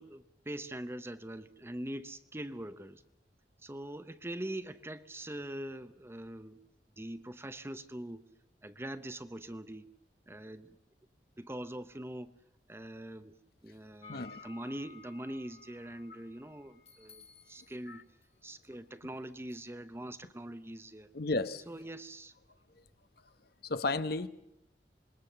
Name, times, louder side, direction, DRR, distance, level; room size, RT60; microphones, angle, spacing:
voice 1, 0.0-3.0 3.6-6.6 7.0-8.2 8.6-9.9 10.3-10.7 11.4-12.3 12.7-13.3 13.6-18.0 18.4-21.1 21.7-22.3, right 1 dB, 15° right, 12 dB, 0.8 m, -43 dB
sound 1, 14.0-18.4 19.5-19.7, left 5 dB, 35° left, 2.3 m, -56 dB
voice 2, 14.1-14.4 17.9-18.0 21.1-21.6 23.6-24.3, left 3 dB, 60° left, 12 dB, 1.0 m, -33 dB
26.5 x 21.0 x 6.8 m, 0.80 s
head